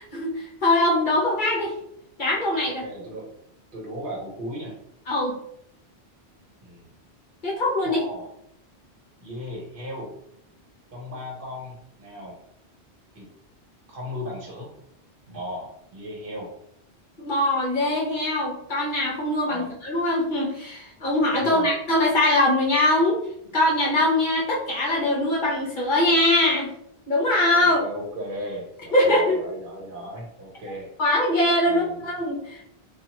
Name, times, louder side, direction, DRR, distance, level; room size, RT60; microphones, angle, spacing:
voice 1, 0.0-1.7 2.2-2.8 5.1-5.4 7.4-8.0 17.2-23.2 23.5-26.7 27.1-27.8 28.9-29.4 31.0-32.7, left 1 dB, 50° left, -3 dB, 0.8 m, -22 dB
voice 2, 2.8-3.3 3.7-4.8 6.6-6.9 7.8-8.3 9.2-10.1 10.9-12.4 13.1-13.3 13.9-14.7 15.3-16.5 19.5-19.8 21.3-21.7 27.6-30.9 31.6-32.0, equal, 55° right, -2 dB, 1.0 m, -36 dB
2.7 x 2.4 x 2.8 m, 0.74 s
omnidirectional pair, 1.1 m